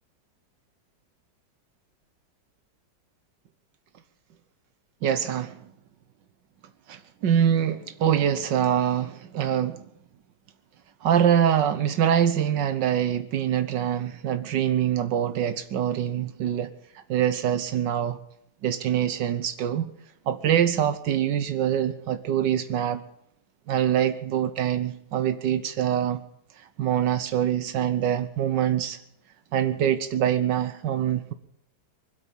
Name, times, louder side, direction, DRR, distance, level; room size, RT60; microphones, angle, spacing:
voice 1, 5.0-5.6 6.9-9.8 11.0-18.2 18.6-19.9 20.3-23.0 23.7-26.2 26.6-29.0 29.5-31.3, right 9 dB, 75° right, 1.5 m, -24 dB
24.0 x 8.2 x 7.2 m
omnidirectional pair, 2.0 m